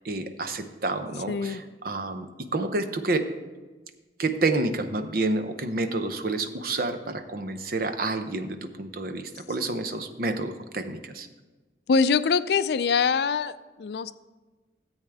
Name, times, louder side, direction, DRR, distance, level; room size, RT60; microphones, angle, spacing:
voice 1, 0.0-3.3 4.2-11.3, right 2 dB, 55° right, 8 dB, 0.7 m, -29 dB
voice 2, 1.3-1.6 11.9-14.1, left 5 dB, 65° left, 14 dB, 0.4 m, -24 dB
14.0 x 8.1 x 3.5 m, 1.2 s
head